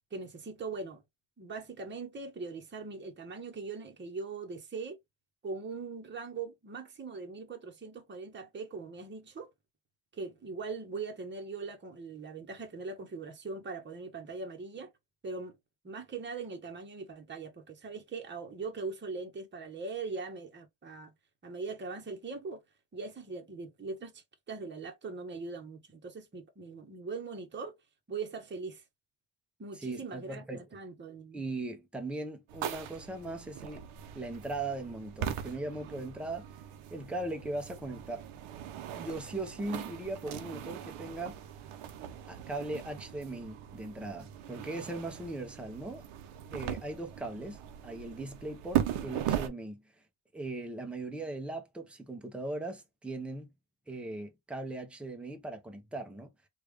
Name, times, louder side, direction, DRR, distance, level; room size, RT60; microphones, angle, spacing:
voice 1, 0.1-1.0 1.4-5.0 5.4-9.5 10.1-14.9 15.2-15.6 15.8-21.1 21.4-22.6 22.9-27.7 28.1-28.8 29.6-31.4, right 4 dB, 25° right, 1.0 m, -41 dB
voice 2, 29.7-30.6 31.3-33.9 34.1-36.5 36.9-38.3 38.9-41.4 42.3-46.0 46.5-49.8 50.3-53.5 53.9-56.3, right 2 dB, ahead, 0.6 m, -39 dB
sound 1, 32.5-49.5, right 10 dB, 85° right, 0.8 m, -39 dB
3.4 x 2.4 x 3.3 m
cardioid pair, 125°, 49 cm